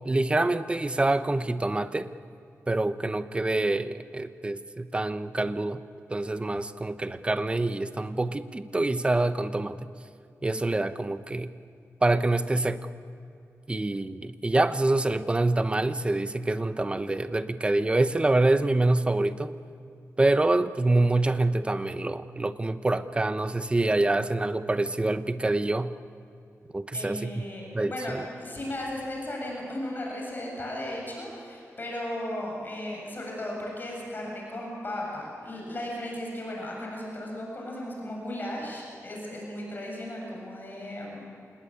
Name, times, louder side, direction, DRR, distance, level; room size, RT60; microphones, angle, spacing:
voice 1, 0.0-2.1 2.7-5.8 6.1-9.9 10.4-11.5 12.0-12.9 13.7-19.5 20.2-25.9 26.7-27.3 27.7-28.2, right 2 dB, 20° right, 11 dB, 0.9 m, -26 dB
voice 2, 26.9-41.2, left 1 dB, 35° left, -2 dB, 7.5 m, -36 dB
27.0 x 20.0 x 8.7 m, 2.6 s
wide cardioid pair, 125°, 6 cm